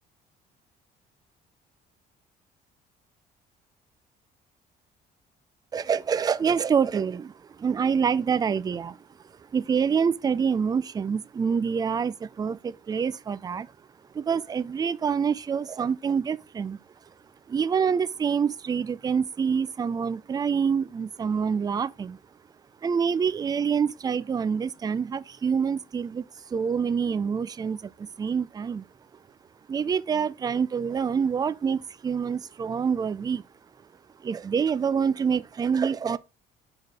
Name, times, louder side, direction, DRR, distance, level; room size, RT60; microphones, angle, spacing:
voice 1, 5.7-9.0 9.5-13.7 14.1-16.8 17.5-22.2 22.8-28.9 29.7-33.4 34.2-36.2, right 6 dB, 25° right, 0.4 m, -26 dB
4.8 x 4.7 x 5.2 m
cardioid pair, 110°, 17 cm